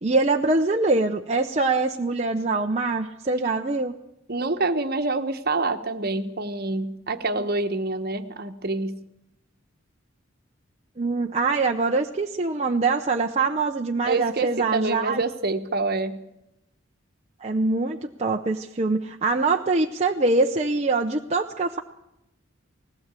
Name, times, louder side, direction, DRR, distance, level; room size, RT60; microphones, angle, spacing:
voice 1, 0.0-3.9 11.0-15.2 17.4-21.8, right 3 dB, 30° right, 2 dB, 0.8 m, -24 dB
voice 2, 4.3-9.0 14.0-16.2, right 3 dB, 50° right, 8 dB, 1.3 m, -27 dB
19.5 x 16.0 x 8.3 m, 0.84 s
head